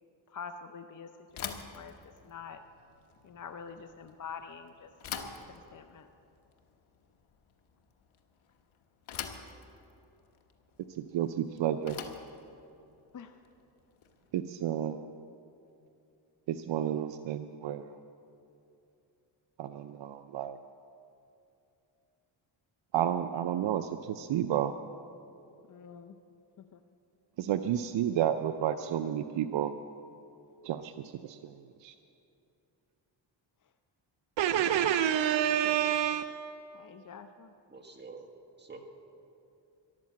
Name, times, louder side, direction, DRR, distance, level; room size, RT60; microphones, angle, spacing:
voice 1, 0.3-2.6 3.2-4.9 5.5-6.1 13.1-13.3 25.7-26.1 26.6-26.8 35.6-35.9 36.7-37.5, left 6 dB, 40° left, 8 dB, 0.6 m, -46 dB
Bicycle / Thump thud, 1.3-14.4, left 7 dB, 80° left, 1.3 m, -46 dB
voice 2, 10.9-12.0 14.3-15.1 16.5-18.0 19.6-20.6 22.9-24.7 27.4-29.7 30.6-30.9 31.2-31.9 34.4-36.5, right 10 dB, 70° right, 9 dB, 0.6 m, -30 dB
voice 3, 37.7-38.3 38.6-38.8, right 4 dB, 20° right, 3 dB, 1.6 m, -47 dB
13.5 x 11.5 x 7.4 m, 2.7 s
cardioid pair, 110°, 47 cm